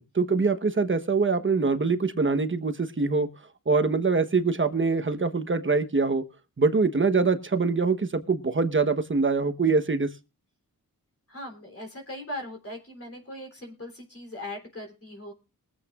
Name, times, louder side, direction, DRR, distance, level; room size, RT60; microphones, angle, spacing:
voice 1, 0.0-3.3 3.7-6.2 6.6-10.1, right 4 dB, 35° right, 1.1 m, -24 dB
voice 2, 11.3-15.3, left 1 dB, 40° left, 3.5 m, -39 dB
22.5 x 8.2 x 2.4 m
wide cardioid pair, 90°, 36 cm